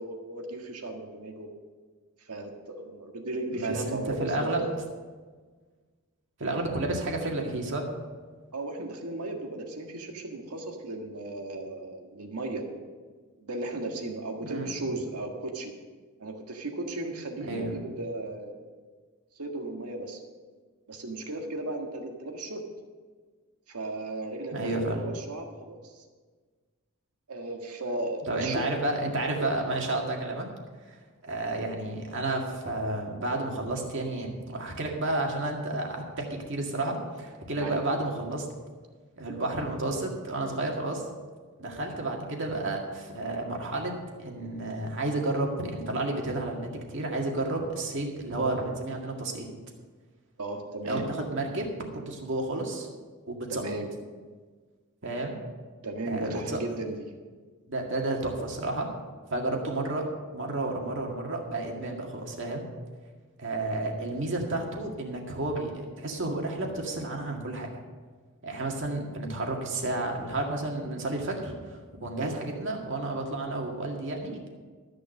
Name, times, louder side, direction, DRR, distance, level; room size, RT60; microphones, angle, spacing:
voice 1, 0.0-1.5 2.2-4.7 8.5-12.7 13.4-15.7 16.2-18.7 19.3-20.2 20.9-22.6 23.7-26.0 27.3-28.7 37.6-38.0 50.4-51.0 53.6-53.9 55.8-57.0 72.2-72.3, right 2 dB, 90° right, 3 dB, 1.7 m, -36 dB
voice 2, 3.5-4.7 6.4-7.9 14.4-14.7 17.4-17.7 24.5-25.0 28.3-30.5 30.9-31.0 31.2-38.5 39.2-41.0 41.6-43.9 44.2-49.5 50.9-51.7 51.9-52.9 53.3-53.6 55.0-55.4 56.1-56.6 57.7-58.9 59.3-60.0 60.3-62.6 63.4-67.7 68.4-74.6, right 2 dB, 55° right, 1 dB, 1.9 m, -31 dB
13.0 x 6.7 x 6.6 m, 1.4 s
head